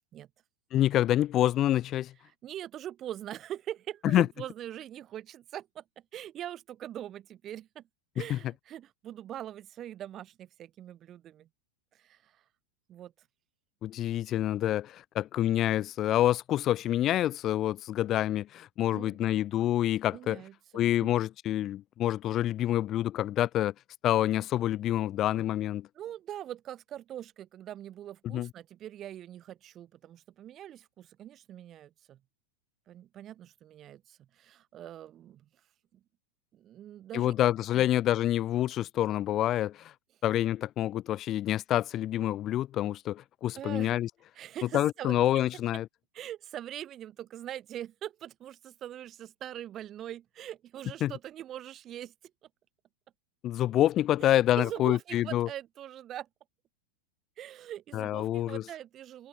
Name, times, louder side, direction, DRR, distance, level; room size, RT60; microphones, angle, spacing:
voice 1, 0.7-2.1 4.0-4.3 8.3-8.4 13.8-20.4 20.7-23.7 24.0-25.9 28.2-28.5 37.1-39.9 40.2-44.1 44.7-45.9 51.0-51.1 53.4-55.5 57.9-58.6, left 13 dB, 30° left, 2.4 m, -27 dB
voice 2, 2.3-5.8 6.1-7.8 8.1-11.5 11.9-12.4 12.9-13.1 18.9-19.2 20.1-21.1 25.9-32.2 32.9-35.5 35.9-36.0 36.5-37.3 37.7-37.9 43.6-44.0 44.3-45.4 46.1-52.1 54.2-56.3 57.4-59.3, right 11 dB, 30° right, 4.5 m, -42 dB
figure-of-eight pair, 90°, 0 cm